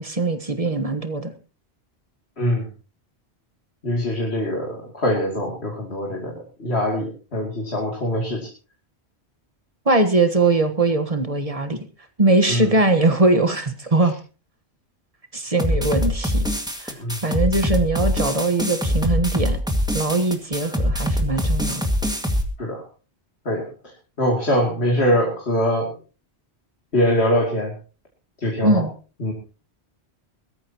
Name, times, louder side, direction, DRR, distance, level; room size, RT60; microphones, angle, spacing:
voice 1, 0.0-1.3 9.8-11.8 12.2-14.1 15.3-16.4 16.8-17.0 17.2-19.6 19.9-21.8 28.6-28.9, right 2 dB, 35° right, 8 dB, 1.4 m, -21 dB
voice 2, 3.8-8.5 12.5-12.7 17.0-17.2 22.6-22.8 23.4-23.7 24.2-25.9 26.9-27.7 28.4-28.8 29.2-29.3, equal, 70° left, -1 dB, 3.1 m, -23 dB
sound 1, 15.6-22.4, equal, 5° right, 1.9 m, -23 dB
21.5 x 13.5 x 3.0 m, 0.35 s
omnidirectional pair, 1.1 m